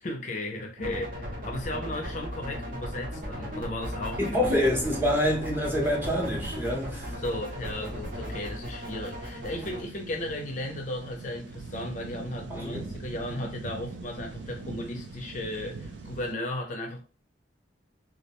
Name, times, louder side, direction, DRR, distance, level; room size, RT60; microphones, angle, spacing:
voice 1, 0.0-4.5 7.1-17.0, left 1 dB, 45° left, 0.4 m, -35 dB
sound 1, 0.8-9.8, equal, 50° right, 0.7 m, -36 dB
voice 2, 4.3-7.2 12.5-12.8, equal, 10° right, 0.7 m, -26 dB
sound 2, 6.0-16.3, right 3 dB, 90° right, 0.4 m, -43 dB
2.3 x 2.1 x 2.8 m
head